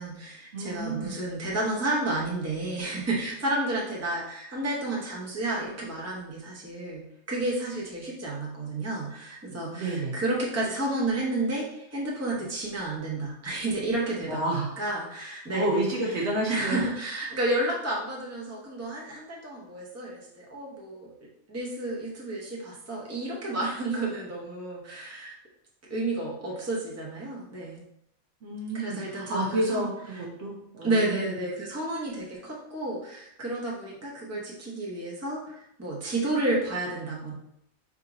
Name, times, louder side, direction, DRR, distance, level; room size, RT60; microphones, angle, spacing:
voice 1, 0.0-15.9 16.5-21.1 21.5-25.4 25.9-27.8 28.7-29.8 30.1-30.2 30.8-37.3, right 2 dB, 15° right, -4 dB, 0.9 m, -31 dB
voice 2, 0.5-1.1 9.7-10.2 14.3-14.8 15.5-16.8 28.4-31.4, right 1 dB, 60° right, -2 dB, 1.0 m, -30 dB
3.7 x 2.8 x 4.8 m, 0.77 s
omnidirectional pair, 1.5 m